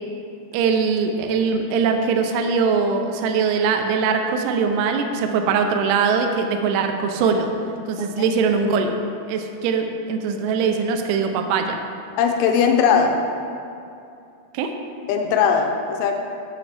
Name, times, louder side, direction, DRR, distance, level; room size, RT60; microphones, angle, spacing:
voice 1, 0.5-7.5 7.9-8.9 9.3-11.8 14.5-14.7, right 5 dB, 80° right, 5 dB, 2.5 m, -21 dB
voice 2, 12.2-13.2 15.1-16.1, left 6 dB, 85° left, 3 dB, 3.1 m, -19 dB
8.7 x 7.1 x 3.3 m, 2.6 s
omnidirectional pair, 5.3 m